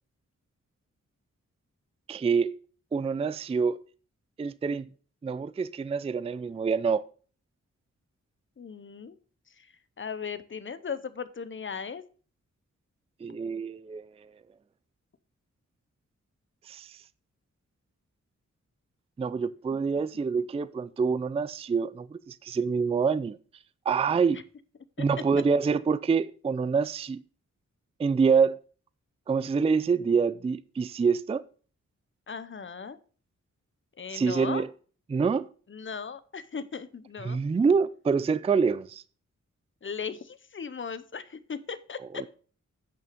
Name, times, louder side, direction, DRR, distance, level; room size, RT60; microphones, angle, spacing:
voice 1, 2.1-2.5 2.9-3.8 4.4-4.9 5.2-7.0 13.2-14.1 16.7-17.0 19.2-23.4 23.9-24.4 25.0-27.2 28.0-28.6 29.3-31.4 34.1-34.7 35.1-35.5 37.2-39.0 42.1-42.3, right 5 dB, 20° right, 0.3 m, -26 dB
voice 2, 8.6-9.2 9.6-9.7 10.0-12.0 25.0-25.1 32.3-33.0 34.0-34.6 35.7-37.4 39.8-42.2, left 6 dB, 40° left, 0.7 m, -37 dB
8.5 x 6.2 x 5.1 m
wide cardioid pair, 125°, 30 cm